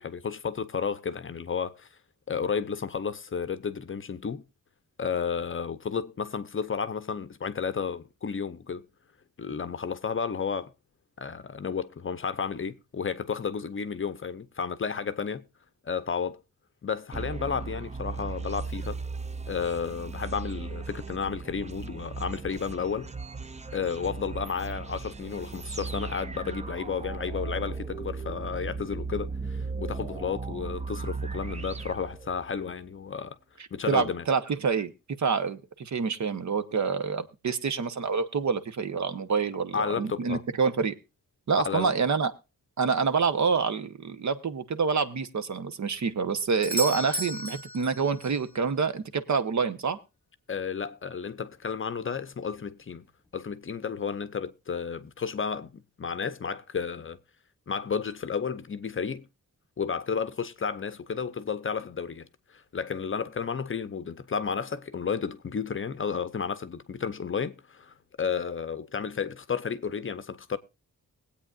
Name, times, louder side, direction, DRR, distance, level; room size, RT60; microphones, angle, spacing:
voice 1, 0.0-1.9 2.3-4.4 5.0-8.9 9.4-10.7 11.2-15.4 15.8-16.4 16.8-19.0 19.5-23.1 23.7-33.4 33.7-34.3 39.7-40.4 41.6-41.9 50.5-53.1 53.3-57.2 57.7-59.2 59.8-70.6, left 6 dB, 35° left, 0.7 m, -32 dB
sound 1, 17.1-32.7, right 4 dB, 20° right, 0.5 m, -37 dB
voice 2, 33.9-40.9 41.5-42.3 42.8-50.0, right 5 dB, 55° right, 1.0 m, -27 dB
Doorbell, 46.6-48.5 52.5-52.6, equal, 5° left, 1.3 m, -34 dB
22.0 x 8.5 x 2.4 m
wide cardioid pair, 125°, 34 cm